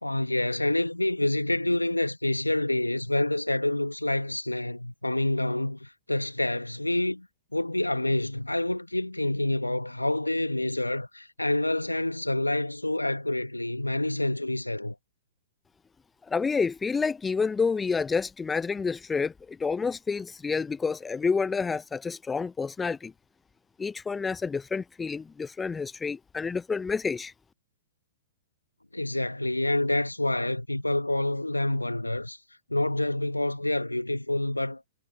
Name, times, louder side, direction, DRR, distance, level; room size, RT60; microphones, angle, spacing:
voice 1, 0.0-7.3 7.5-15.0 28.9-32.4 32.7-34.8, left 1 dB, 90° left, 1.7 m, -27 dB
voice 2, 16.3-23.1 23.8-27.3, left 5 dB, 10° left, 0.8 m, -29 dB
figure-of-eight pair, 110°, 0 cm